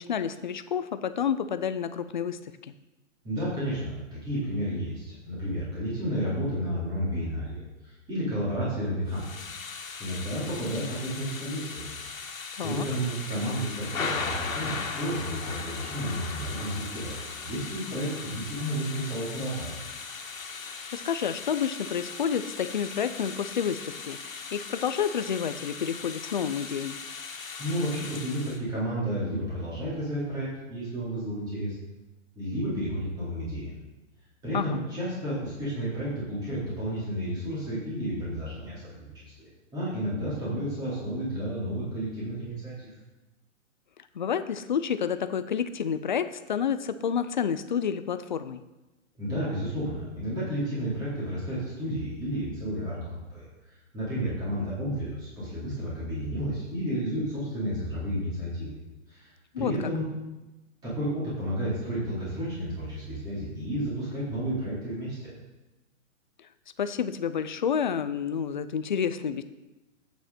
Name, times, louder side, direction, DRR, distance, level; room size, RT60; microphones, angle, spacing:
voice 1, 0.0-2.4 12.6-12.9 20.6-27.0 34.5-34.8 44.1-48.6 59.5-59.7 66.8-69.4, left 7 dB, 40° left, 12 dB, 0.5 m, -29 dB
voice 2, 3.2-9.4 10.0-11.9 12.6-19.7 27.6-31.7 32.3-33.8 34.4-42.9 49.2-53.4 53.9-58.7 59.1-59.3 59.6-60.0 60.8-65.2, equal, 10° right, -9 dB, 4.2 m, -32 dB
Thunder / Rain, 9.1-28.6, left 5 dB, 80° left, 2.1 m, -38 dB
11.5 x 9.3 x 4.4 m, 1.0 s
hypercardioid pair, 170°, 39 cm